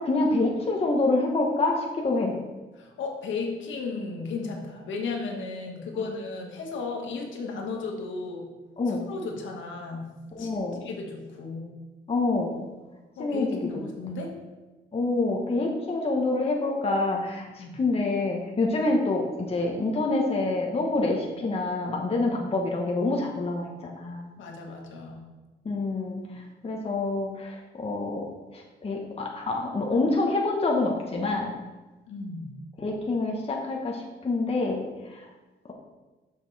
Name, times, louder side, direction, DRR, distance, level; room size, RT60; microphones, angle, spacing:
voice 1, 0.0-2.4 8.8-9.0 10.3-10.8 12.1-12.6 13.2-13.6 14.9-24.3 25.6-28.2 28.5-31.5 32.8-34.8 35.1-35.2, left 2 dB, 30° left, 0 dB, 1.1 m, -27 dB
voice 2, 2.8-8.5 8.9-10.1 10.4-10.5 10.8-11.7 13.1-14.3 17.6-17.7 24.4-25.2 32.1-32.5, left 4 dB, 75° left, 1 dB, 1.5 m, -34 dB
6.5 x 5.4 x 4.1 m, 1.2 s
cardioid pair, 90°, 20 cm